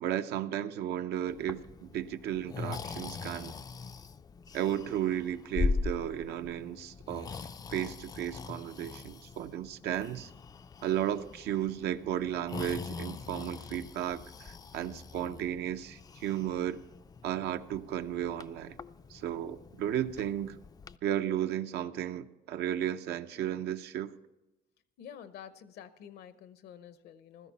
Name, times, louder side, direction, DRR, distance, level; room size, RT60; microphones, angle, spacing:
voice 1, 0.0-3.5 4.5-7.3 7.7-10.3 10.8-16.8 17.2-18.8 19.1-20.6 21.0-24.1, right 11 dB, 75° right, 9 dB, 0.7 m, -34 dB
Breathing, 1.3-21.0, left 4 dB, 25° left, 0.3 m, -41 dB
voice 2, 25.0-27.5, left 9 dB, 70° left, 13 dB, 0.8 m, -49 dB
15.5 x 13.5 x 4.1 m, 1.0 s
cardioid pair, 110°, 17 cm